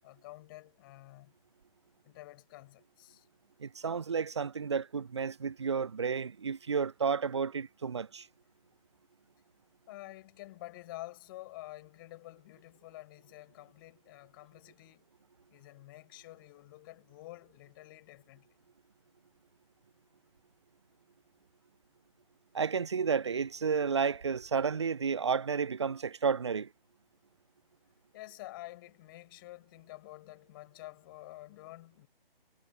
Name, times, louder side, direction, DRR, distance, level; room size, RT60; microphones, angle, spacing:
voice 1, 0.0-1.3 2.0-3.3 9.9-15.0 15.5-18.5 28.1-32.1, left 18 dB, 20° left, 6.7 m, -49 dB
voice 2, 3.6-8.3 22.5-26.7, right 6 dB, 30° right, 0.6 m, -31 dB
figure-of-eight pair, 145°, 29 cm